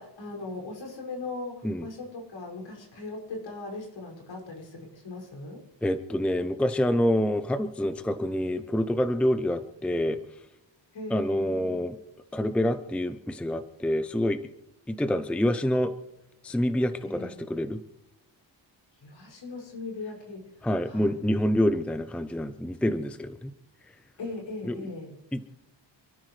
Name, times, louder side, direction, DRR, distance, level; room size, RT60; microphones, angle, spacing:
voice 1, 0.0-5.6 10.9-11.9 17.0-17.4 19.0-20.5 20.8-21.2 24.2-25.1, left 3 dB, 70° left, -1 dB, 6.1 m, -39 dB
voice 2, 5.8-10.2 11.1-12.0 12.3-14.4 14.9-15.9 16.4-17.8 20.6-23.5 24.6-24.8 25.3-25.4, left 1 dB, 5° left, 10 dB, 0.6 m, -27 dB
27.5 x 13.5 x 3.3 m, 0.85 s
wide cardioid pair, 170°, 45 cm